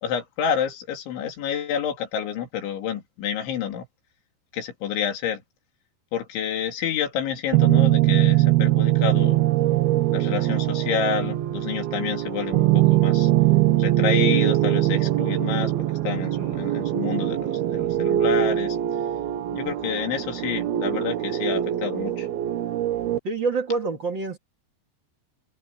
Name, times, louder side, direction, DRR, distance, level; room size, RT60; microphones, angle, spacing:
voice 1, 0.0-3.9 4.5-5.4 6.1-9.5 10.1-13.3 13.8-15.7 16.1-18.8 19.5-22.3, left 8 dB, 85° left, 5.2 m, -29 dB
sound 1, 7.5-23.2, right 14 dB, 70° right, 2.9 m, -22 dB
voice 2, 23.2-24.4, right 4 dB, 45° right, 1.6 m, -26 dB
omnidirectional pair, 5.2 m